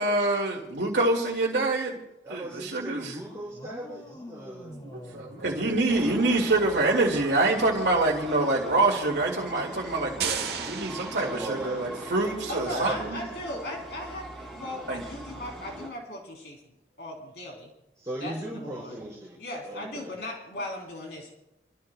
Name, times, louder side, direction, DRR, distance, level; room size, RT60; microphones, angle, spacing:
voice 1, 0.0-2.0 2.3-3.1 4.9-13.2 14.9-15.0, right 2 dB, 85° right, -1 dB, 2.3 m, -26 dB
voice 2, 2.2-4.8 11.0-13.2 18.0-19.4 19.6-20.1, right 1 dB, 20° right, -7 dB, 5.2 m, -38 dB
sound 1, 3.5-6.7, equal, 30° left, 2.3 m, -46 dB
voice 3, 5.3-5.7 12.5-14.3 14.5-16.6 17.0-17.7 18.2-19.0 19.4-21.3, left 1 dB, 70° left, -1 dB, 3.5 m, -38 dB
sound 2, 5.9-15.9, right 1 dB, ahead, 3.4 m, -41 dB
sound 3, 10.2-12.0, right 7 dB, 65° right, 1.3 m, -34 dB
28.0 x 13.5 x 2.3 m, 0.88 s
head